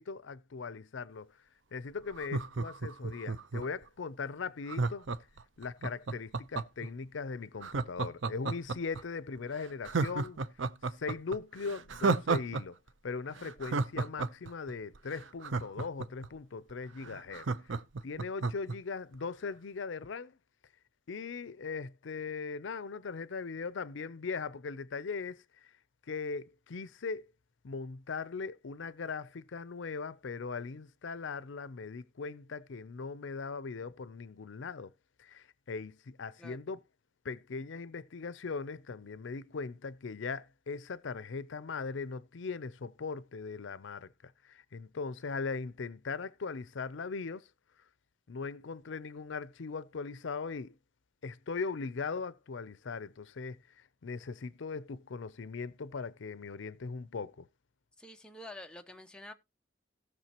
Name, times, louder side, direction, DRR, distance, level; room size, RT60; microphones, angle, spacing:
voice 1, 0.0-1.4 1.7-5.1 5.6-10.4 10.9-12.8 13.0-17.8 18.0-20.4 21.1-25.7 26.1-27.3 27.6-34.9 35.2-36.8 37.2-47.5 48.3-50.8 51.2-57.5, left 4 dB, 80° left, 0.5 m, -39 dB
Laughter, 2.1-3.8 4.7-6.9 7.6-9.0 9.4-9.5 9.8-12.6 12.9-13.0 13.4-16.3 16.7-16.8 17.0-18.8 19.1-19.2, right 4 dB, 80° right, 0.6 m, -32 dB
voice 2, 58.0-59.3, left 1 dB, 5° left, 0.8 m, -48 dB
17.5 x 6.5 x 2.9 m
head